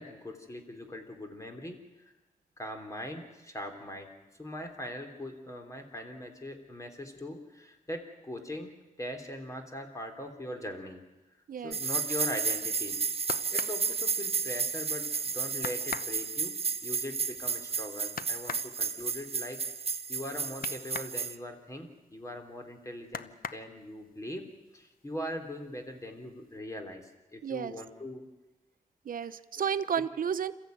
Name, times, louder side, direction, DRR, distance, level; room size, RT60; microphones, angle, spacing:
voice 1, 0.0-2.1 2.6-11.0 11.6-13.0 13.3-16.6 16.8-19.6 20.1-24.5 24.7-28.2, left 1 dB, 20° left, 5 dB, 3.3 m, -41 dB
sound 1, 11.7-21.4, right 6 dB, 45° right, 0.9 m, -32 dB
sound 2, 12.8-14.8 15.2-15.3 15.6-21.2 21.5-22.6 23.0-24.1 24.6-25.2 25.4-26.2 26.5-26.6, left 7 dB, 80° left, 0.9 m, -42 dB
voice 2, 27.4-27.7 29.0-30.5, right 7 dB, 75° right, 13 dB, 0.9 m, -32 dB
28.0 x 14.5 x 9.3 m, 1.1 s
wide cardioid pair, 135°, 15 cm